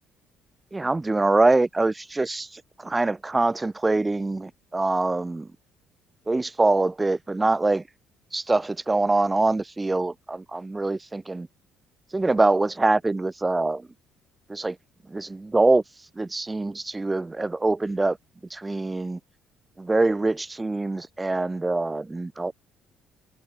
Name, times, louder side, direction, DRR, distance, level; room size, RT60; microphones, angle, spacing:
voice 1, 0.7-5.5 6.3-7.8 8.3-11.5 12.1-13.9 14.5-14.8 15.1-15.8 16.2-18.2 18.5-19.2 19.8-22.5, right 2 dB, 15° right, 1.2 m, -24 dB
cardioid pair, 90°, 0 cm